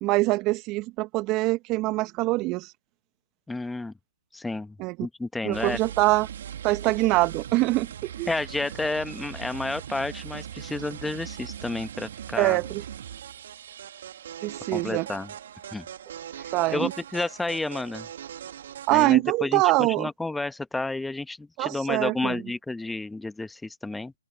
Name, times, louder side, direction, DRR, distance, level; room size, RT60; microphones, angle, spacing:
voice 1, 0.0-2.7 4.8-4.9 5.4-6.3 6.6-8.3 12.4-12.8 14.4-15.1 16.5-16.9 18.9-20.1 21.6-22.4, right 21 dB, 25° right, 1.0 m, -24 dB
voice 2, 3.5-3.9 4.3-4.8 5.0-5.8 8.3-12.6 14.7-15.3 15.7-15.9 16.7-18.1 18.9-24.1, left 2 dB, 5° left, 1.2 m, -31 dB
sound 1, 5.5-19.0, right 9 dB, 50° right, 1.9 m, -40 dB
open air
figure-of-eight pair, 135°, 0 cm